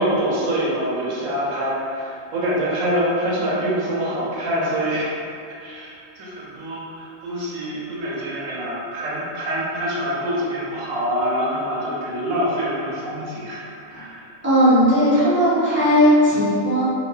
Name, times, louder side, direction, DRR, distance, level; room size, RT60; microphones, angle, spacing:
voice 1, 0.0-5.1 5.6-14.3, equal, 85° right, -6 dB, 1.0 m, -25 dB
voice 2, 14.4-16.8, equal, 15° right, -12 dB, 0.4 m, -17 dB
3.1 x 2.1 x 2.2 m, 2.6 s
omnidirectional pair, 1.4 m